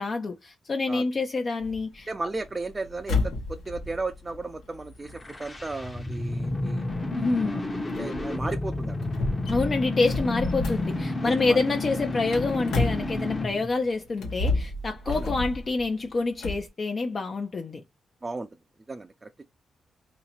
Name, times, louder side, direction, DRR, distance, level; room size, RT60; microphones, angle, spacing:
voice 1, 0.0-2.1 7.2-7.6 9.5-17.8, left 3 dB, 45° left, 0.6 m, -27 dB
sound 1, 1.6-13.6 14.1-16.7, left 3 dB, 85° left, 1.2 m, -32 dB
voice 2, 2.1-6.8 7.3-7.6 8.0-9.0 11.2-11.6 15.1-15.3 18.2-18.5 18.9-19.4, right 3 dB, 30° right, 0.5 m, -35 dB
sound 2, 5.1-13.7, left 2 dB, 30° left, 1.0 m, -31 dB
2.8 x 2.8 x 4.2 m
cardioid pair, 60°, 0 cm